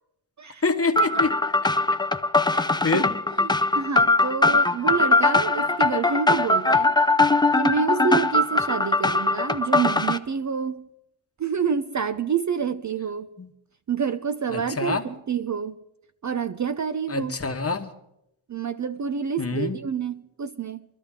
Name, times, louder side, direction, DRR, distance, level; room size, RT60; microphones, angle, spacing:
voice 1, 0.6-1.3 1.6-1.7 2.7-3.1 13.4-13.5 14.5-15.1 17.1-17.9 19.4-19.8, left 4 dB, 30° left, 1.2 m, -26 dB
sound 1, 1.0-10.2, left 2 dB, 10° left, 0.5 m, -21 dB
voice 2, 2.5-3.0 3.3-7.0 7.6-10.9 11.4-13.3 13.9-15.8 16.2-17.3 18.5-20.9, right 6 dB, 40° right, 0.6 m, -28 dB
22.5 x 12.0 x 3.7 m
cardioid pair, 70°, 48 cm